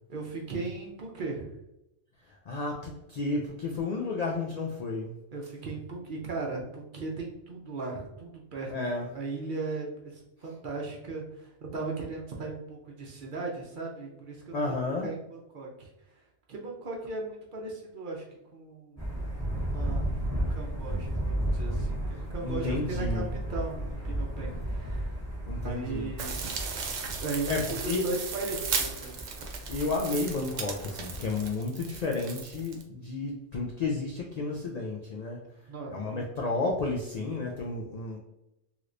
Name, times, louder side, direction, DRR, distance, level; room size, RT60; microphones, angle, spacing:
voice 1, 0.1-1.5 5.3-8.7 9.1-14.6 15.0-15.9 16.5-18.2 18.5-19.1 19.7-20.1 20.3-25.1 25.5-26.5 27.2-27.5 27.8-29.2 35.7-36.2, right 3 dB, 55° right, -1 dB, 0.7 m, -37 dB
voice 2, 2.5-5.2 8.7-9.1 14.5-15.1 22.4-23.3 25.5-26.1 27.5-28.1 29.7-35.4 35.9-38.2, left 3 dB, 90° left, -1 dB, 0.3 m, -32 dB
Thunder, 19.0-31.5, right 1 dB, 15° left, 0.9 m, -34 dB
sound 1, 26.2-32.8, right 5 dB, 80° right, 1.0 m, -36 dB
3.2 x 3.0 x 2.5 m, 0.88 s
omnidirectional pair, 1.3 m